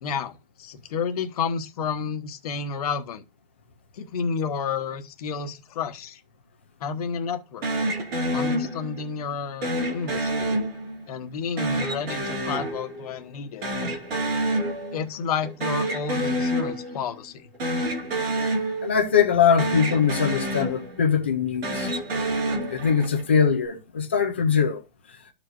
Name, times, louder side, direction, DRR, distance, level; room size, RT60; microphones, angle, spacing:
voice 1, 0.0-3.2 3.9-6.2 6.8-7.6 8.3-10.6 11.1-13.6 14.9-17.5, left 6 dB, 40° left, 1.0 m, -31 dB
sound 1, 7.6-9.1 9.6-11.2 11.6-13.4 13.6-15.1 15.4-17.1 17.5-19.3 19.6-21.2 21.5-23.3, right 1 dB, 85° right, 2.6 m, -28 dB
voice 2, 18.8-21.9 22.7-24.8, left 7 dB, 15° left, 0.3 m, -22 dB
13.5 x 4.7 x 2.5 m
hypercardioid pair, 170°, 29 cm